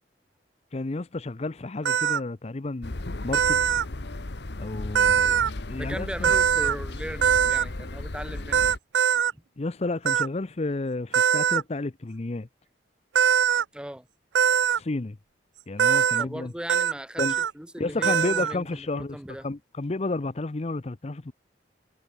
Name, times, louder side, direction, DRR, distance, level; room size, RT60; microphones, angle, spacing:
voice 1, 0.7-3.0 3.2-3.6 4.6-6.3 9.6-12.5 14.8-15.2 15.7-16.5 17.2-17.4 17.8-19.2 19.4-21.3, left 2 dB, 35° left, 0.6 m, -31 dB
sound 1, 1.9-2.2 3.3-3.9 5.0-5.5 6.2-6.8 7.2-7.7 8.5-9.3 10.1-10.3 11.1-11.6 13.2-13.6 14.4-14.8 15.8-16.3 16.7-16.9 17.2-17.5 18.0-18.5, right 8 dB, 70° right, 0.4 m, -22 dB
sound 2, 2.8-8.8, left 2 dB, 65° left, 1.2 m, -35 dB
voice 2, 5.8-8.7 9.3-9.4 13.7-14.1 16.2-19.5, right 1 dB, 5° right, 0.8 m, -38 dB
head